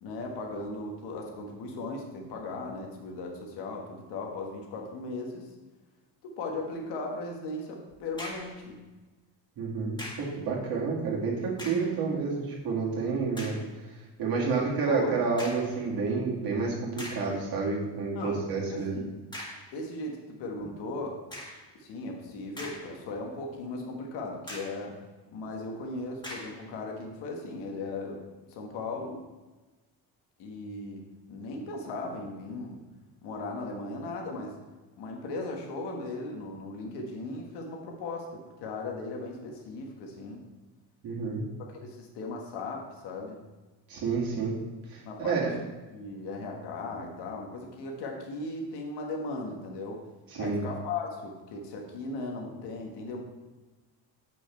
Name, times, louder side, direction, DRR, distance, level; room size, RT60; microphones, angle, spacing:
voice 1, 0.0-5.5 6.2-8.8 14.4-15.3 18.1-19.1 19.7-21.2 21.8-25.0 25.3-28.2 28.5-29.2 30.4-32.8 33.2-34.6 35.0-40.4 41.7-43.4 45.0-45.7 45.9-50.0 50.4-53.2, left 2 dB, 75° left, 1 dB, 1.5 m, -37 dB
sound 1, 7.9-8.6 10.0-10.4 11.5-12.0 12.6-12.7 13.3-13.7 15.4-15.8 16.4-16.5 17.0-17.4 19.3-19.7 21.3-21.7 22.3-23.1 23.5-23.6 24.5-24.8 26.2-26.6, left 1 dB, 10° left, 1.7 m, -41 dB
voice 2, 9.6-13.6 14.2-19.0 41.0-41.4 43.9-44.5 44.9-45.5 50.3-50.6, right 4 dB, 55° right, -4 dB, 2.1 m, -29 dB
7.4 x 6.2 x 4.4 m, 1.2 s
cardioid pair, 155°, 41 cm